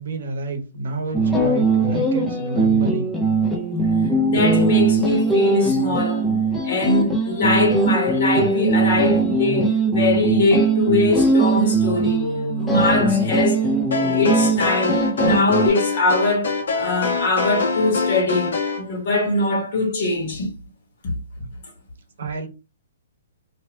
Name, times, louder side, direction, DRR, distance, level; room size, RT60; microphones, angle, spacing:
voice 1, 0.0-3.1 22.2-22.5, right 3 dB, 65° right, 0.8 m, -29 dB
sound 1, 1.1-15.7, right 3 dB, 5° left, 0.4 m, -20 dB
voice 2, 4.3-6.3 6.6-12.3 12.6-13.6 14.0-20.5 21.0-21.1, left 2 dB, 45° left, 1.2 m, -22 dB
sound 2, 13.9-18.8, left 4 dB, 90° left, 1.0 m, -24 dB
2.6 x 2.3 x 3.0 m
hypercardioid pair, 175°, 0 cm